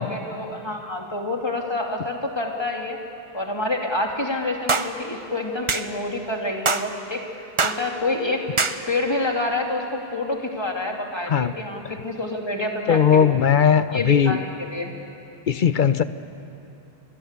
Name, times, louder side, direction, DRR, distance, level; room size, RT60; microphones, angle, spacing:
voice 1, 0.0-3.0 3.3-13.4 13.9-14.9, left 2 dB, 25° left, 1 dB, 2.7 m, -28 dB
sound 1, 4.7-4.9 5.7-5.9 6.7-6.9 7.6-7.8 8.6-8.8, right 4 dB, 30° right, 0.9 m, -22 dB
voice 2, 12.9-14.4 15.5-16.0, left 7 dB, 55° left, 13 dB, 0.9 m, -18 dB
28.0 x 21.5 x 8.2 m, 2.8 s
omnidirectional pair, 1.0 m